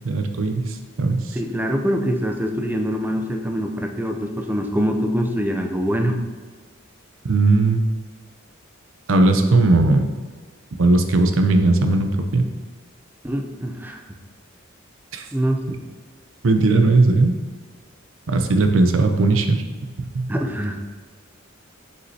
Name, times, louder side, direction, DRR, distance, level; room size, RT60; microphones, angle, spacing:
voice 1, 0.0-1.4 7.2-7.8 9.1-10.1 10.8-12.5 15.1-15.2 16.4-17.3 18.3-19.6 20.1-20.3, right 2 dB, 70° right, 6 dB, 0.6 m, -18 dB
voice 2, 1.3-6.2 13.2-14.0 15.3-15.8 20.3-20.8, equal, 10° right, 3 dB, 0.4 m, -24 dB
6.3 x 5.4 x 2.7 m, 1.4 s
head